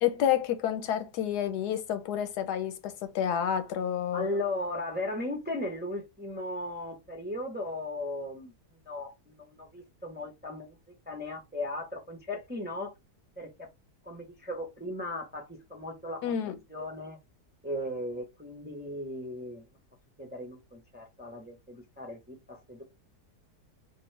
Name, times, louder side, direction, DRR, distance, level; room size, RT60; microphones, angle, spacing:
voice 1, 0.0-4.3 16.2-16.6, left 9 dB, 85° left, 1.3 m, -29 dB
voice 2, 4.1-8.5 8.9-10.8 11.1-12.9 13.4-13.7 14.0-16.2 16.7-17.2 17.6-19.7 20.2-22.8, left 1 dB, 10° right, 0.5 m, -37 dB
4.5 x 2.4 x 3.2 m
omnidirectional pair, 1.7 m